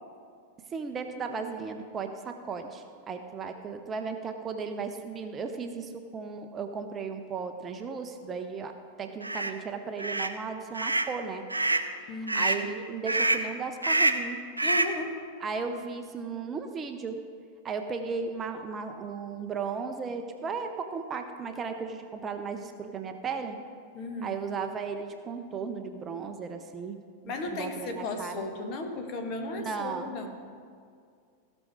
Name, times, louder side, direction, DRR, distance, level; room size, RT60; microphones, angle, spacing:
voice 1, 0.7-8.7 9.0-11.5 12.3-14.4 15.4-17.2 17.6-23.6 24.2-27.0 27.2-28.5 29.6-30.2, right 5 dB, 25° right, 6 dB, 0.6 m, -35 dB
sound 1, 9.2-9.5 10.0-10.3 10.7-11.1 11.5-11.9 12.3-12.6 13.1-13.5 13.8-14.3 14.6-15.0, right 2 dB, 85° right, 0.5 m, -26 dB
voice 2, 12.1-12.6 14.6-15.2 23.9-24.4 27.2-30.4, left 2 dB, 40° left, 4 dB, 1.3 m, -35 dB
16.0 x 6.3 x 4.9 m, 2.3 s
figure-of-eight pair, 90°, 0 cm